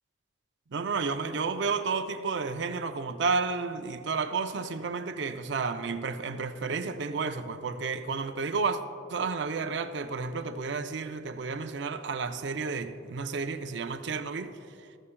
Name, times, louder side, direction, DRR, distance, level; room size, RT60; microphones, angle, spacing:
voice 1, 0.7-8.8 9.1-14.5, right 4 dB, 60° right, 0.5 m, -31 dB
14.0 x 14.0 x 2.3 m
head